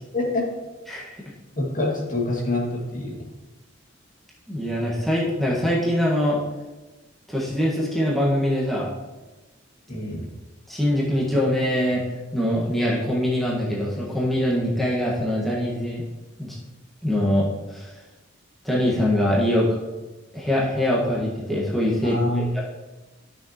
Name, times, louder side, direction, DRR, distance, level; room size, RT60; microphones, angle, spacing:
voice 1, 0.1-0.7 1.6-3.3 9.9-10.3 22.0-22.4, left 2 dB, 45° left, -3 dB, 2.1 m, -26 dB
voice 2, 4.5-6.4 7.3-8.9 10.7-12.0 12.3-16.0 16.4-16.6 17.0-18.0 18.6-19.8 20.3-22.6, equal, ahead, -6 dB, 1.5 m, -23 dB
12.0 x 6.3 x 3.0 m, 1.1 s
head